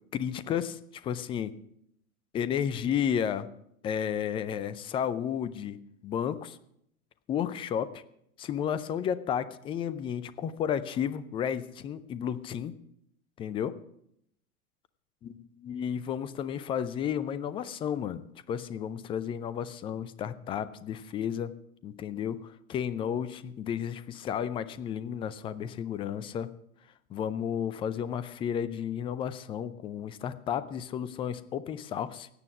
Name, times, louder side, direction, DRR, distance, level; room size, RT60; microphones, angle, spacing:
voice 1, 0.1-1.5 2.3-3.5 3.8-6.6 7.3-8.0 8.4-12.8 13.4-13.7 15.2-21.5 21.8-26.5 27.1-32.3, left 8 dB, 10° left, 16 dB, 0.4 m, -32 dB
16.5 x 9.7 x 5.9 m, 0.74 s
figure-of-eight pair, 95°, 44 cm